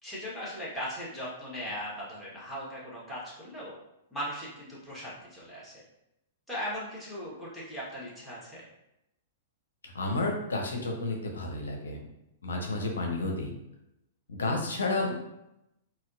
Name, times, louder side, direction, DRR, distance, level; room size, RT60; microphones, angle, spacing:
voice 1, 0.0-3.7 4.1-5.8 6.5-8.7, equal, ahead, -8 dB, 1.4 m, -38 dB
voice 2, 9.8-12.0 12.4-13.5 14.3-15.2, left 2 dB, 85° left, 1 dB, 0.6 m, -31 dB
4.1 x 2.1 x 2.6 m, 0.86 s
hypercardioid pair, 115°, 0 cm